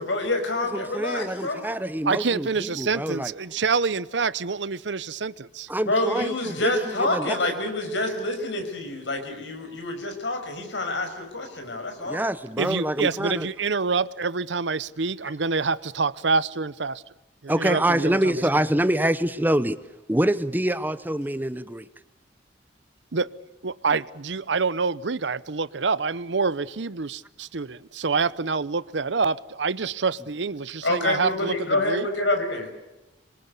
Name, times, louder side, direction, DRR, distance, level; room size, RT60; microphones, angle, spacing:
voice 1, 0.0-1.6 5.9-12.2 30.8-32.7, left 2 dB, 90° left, 5.9 m, -27 dB
voice 2, 0.7-3.3 5.7-7.4 12.0-13.5 17.5-19.8 20.1-21.9, right 1 dB, 10° right, 0.9 m, -25 dB
voice 3, 2.0-5.7 12.6-17.0 17.4-18.3 23.1-23.3 23.6-32.1, right 4 dB, 80° right, 0.8 m, -26 dB
26.5 x 23.0 x 8.3 m
head